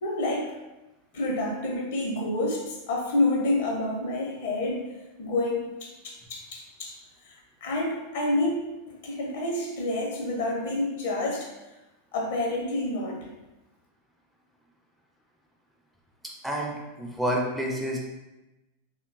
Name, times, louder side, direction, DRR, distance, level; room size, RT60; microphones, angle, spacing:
voice 1, 0.0-0.6 1.1-4.9 5.2-7.0 7.2-11.5 12.1-13.3, left 2 dB, 55° left, -1 dB, 0.6 m, -28 dB
voice 2, 16.4-18.0, equal, 5° right, -2 dB, 0.4 m, -29 dB
2.8 x 2.1 x 2.6 m, 1.0 s
figure-of-eight pair, 90°, 0 cm